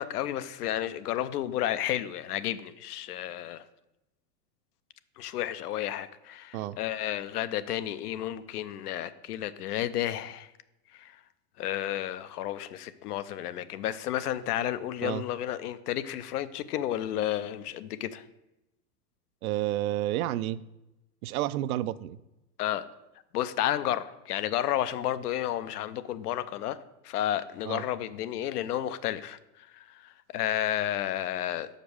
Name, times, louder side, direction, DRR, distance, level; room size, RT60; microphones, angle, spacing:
voice 1, 0.0-3.6 5.2-10.5 10.9-11.2 11.6-18.2 22.6-22.9 23.3-26.8 27.0-31.7, left 12 dB, 80° left, 13 dB, 0.7 m, -32 dB
voice 2, 19.4-20.6 21.2-22.2 27.6-27.8, right 14 dB, 70° right, 15 dB, 0.5 m, -30 dB
6.1 x 5.2 x 6.4 m, 0.93 s
supercardioid pair, 135°, 46 cm